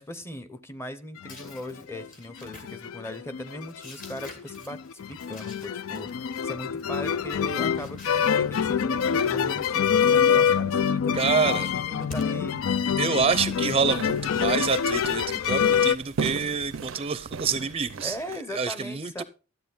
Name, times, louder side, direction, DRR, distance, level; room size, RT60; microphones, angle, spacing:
voice 1, 0.0-6.1 6.4-12.6 18.0-19.2, equal, 15° left, 0.8 m, -39 dB
sound 1, 1.2-2.1 2.4-15.9, left 7 dB, 85° left, 0.4 m, -26 dB
sound 2, 1.2-8.3 8.8-9.8 10.2-10.9 11.7-12.4 13.3-14.6, left 2 dB, 40° left, 2.5 m, -49 dB
voice 2, 11.1-11.7 13.0-18.2 18.5-19.2, right 5 dB, 30° right, 0.5 m, -27 dB
sound 3, 13.2-18.4, right 5 dB, 80° right, 0.5 m, -37 dB
13.0 x 8.2 x 4.0 m
head